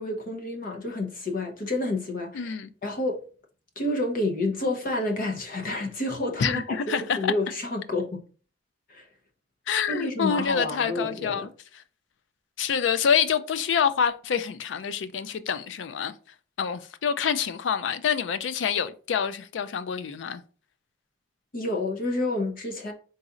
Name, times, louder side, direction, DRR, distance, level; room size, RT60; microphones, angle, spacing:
voice 1, 0.0-2.5 2.8-3.3 3.8-8.2 8.9-9.1 9.9-11.5 21.5-22.9, left 2 dB, 50° left, 0.8 m, -29 dB
voice 2, 2.3-2.7 6.4-7.3 9.7-11.8 12.6-16.1 16.6-20.4, left 7 dB, 80° left, 0.4 m, -27 dB
4.0 x 4.0 x 2.4 m
head